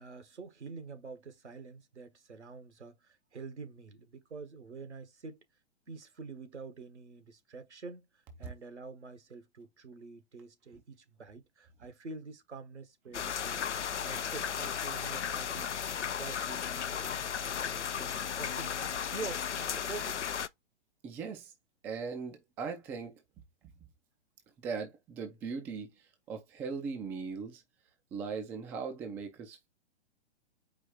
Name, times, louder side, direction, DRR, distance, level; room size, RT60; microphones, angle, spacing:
voice 1, 0.0-5.4 5.9-13.6 14.0-15.7 16.2-18.7 19.1-20.2, right 4 dB, 80° right, 1.5 m, -47 dB
sound 1, 13.1-20.5, left 8 dB, 85° left, 0.5 m, -35 dB
voice 2, 21.0-21.5 21.8-23.2 24.6-27.6 28.1-29.7, right 5 dB, 5° right, 0.3 m, -39 dB
4.9 x 2.5 x 4.4 m
figure-of-eight pair, 115°, 34 cm